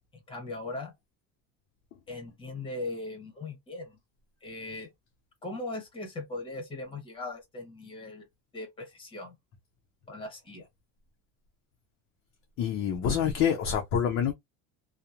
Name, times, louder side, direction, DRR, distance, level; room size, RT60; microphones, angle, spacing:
voice 1, 0.1-0.9 2.1-4.0 4.4-4.9 5.4-8.3 8.5-9.3 10.1-10.7, left 2 dB, 15° left, 0.9 m, -39 dB
voice 2, 12.6-14.3, left 8 dB, 35° left, 0.5 m, -26 dB
2.9 x 2.0 x 2.4 m
cardioid pair, 160°, 40 cm